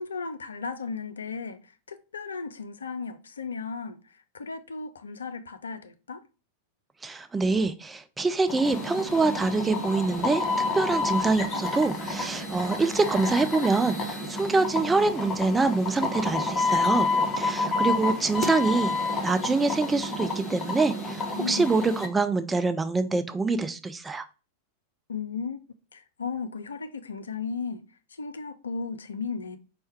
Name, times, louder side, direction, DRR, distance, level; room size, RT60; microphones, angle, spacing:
voice 1, 0.0-6.2 21.4-21.7 25.1-25.6 25.9-27.8 28.2-29.6, left 5 dB, 70° left, 0.4 m, -35 dB
voice 2, 7.0-10.4 10.7-17.1 17.4-18.9 19.2-24.2, right 3 dB, 10° right, 0.4 m, -25 dB
sound 1, 8.5-22.1, left 3 dB, 25° left, 0.8 m, -29 dB
4.4 x 2.2 x 4.2 m
figure-of-eight pair, 90°, 0 cm